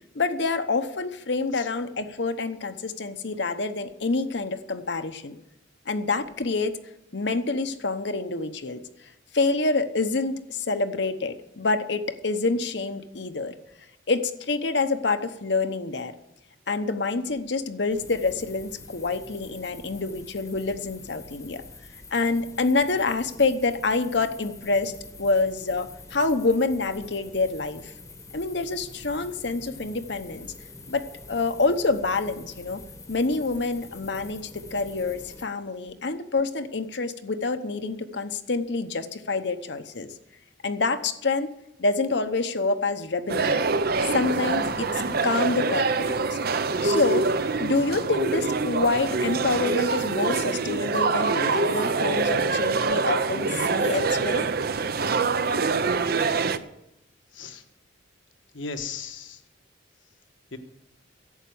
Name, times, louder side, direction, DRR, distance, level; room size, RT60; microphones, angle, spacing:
voice 1, 0.1-5.4 5.9-6.8 7.1-8.8 9.3-13.5 14.1-16.1 16.7-21.6 22.1-24.9 25.2-27.9 28.3-30.5 30.9-32.8 33.1-40.1 40.6-41.5 41.8-43.6 44.1-46.4 46.8-47.3 47.6-54.5, left 3 dB, 60° left, 9 dB, 0.9 m, -27 dB
sound 1, 17.9-35.4, left 3 dB, 15° left, 1.0 m, -46 dB
sound 2, 43.3-56.6, right 4 dB, 50° right, 0.7 m, -25 dB
voice 2, 58.5-59.4 60.5-60.6, left 5 dB, 75° left, 7 dB, 1.4 m, -36 dB
11.5 x 8.2 x 9.4 m, 0.85 s
head